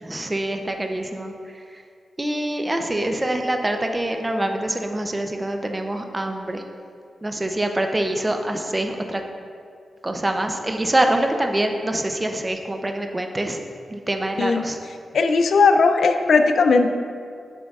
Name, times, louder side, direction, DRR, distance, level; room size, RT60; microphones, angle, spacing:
voice 1, 0.0-1.3 1.7-1.8 2.2-6.6 7.2-9.2 10.0-13.6 13.9-14.8, right 1 dB, 20° right, 4 dB, 0.5 m, -25 dB
voice 2, 15.1-16.9, left 4 dB, 75° left, 7 dB, 0.4 m, -17 dB
7.3 x 6.3 x 2.4 m, 2.3 s
wide cardioid pair, 105°, 0 cm